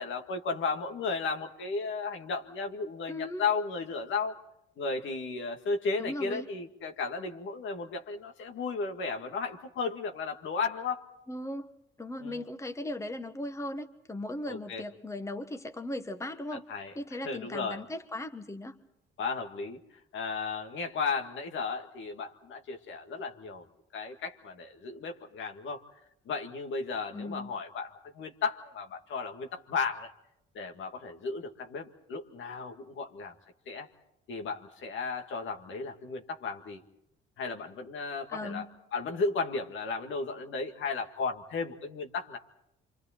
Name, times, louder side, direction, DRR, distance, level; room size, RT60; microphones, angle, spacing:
voice 1, 0.0-4.4 4.8-11.1 12.2-12.4 14.5-14.8 16.7-16.9 17.2-17.8 19.2-19.8 20.1-23.7 23.9-25.9 26.3-30.1 30.5-33.3 33.7-33.9 34.3-36.8 37.4-38.7 38.9-42.4, left 4 dB, 65° left, 4 dB, 2.1 m, -34 dB
voice 2, 3.1-3.4 6.0-6.5 11.3-16.6 16.9-18.8 27.1-27.5 38.3-38.7, left 1 dB, 15° left, 7 dB, 1.4 m, -38 dB
27.5 x 25.5 x 4.4 m, 0.80 s
supercardioid pair, 80°, 21 cm